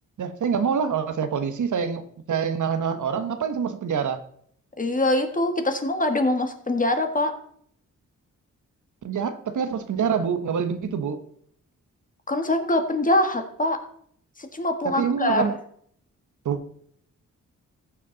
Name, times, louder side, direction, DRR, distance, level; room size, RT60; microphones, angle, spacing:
voice 1, 0.2-4.2 9.0-11.2 14.8-15.5 16.4-16.8, right 6 dB, 65° right, 9 dB, 1.0 m, -26 dB
voice 2, 4.8-7.3 12.3-13.8 14.4-15.5, left 1 dB, 25° left, 6 dB, 1.6 m, -23 dB
14.5 x 6.3 x 3.9 m, 0.62 s
cardioid pair, 80°, 32 cm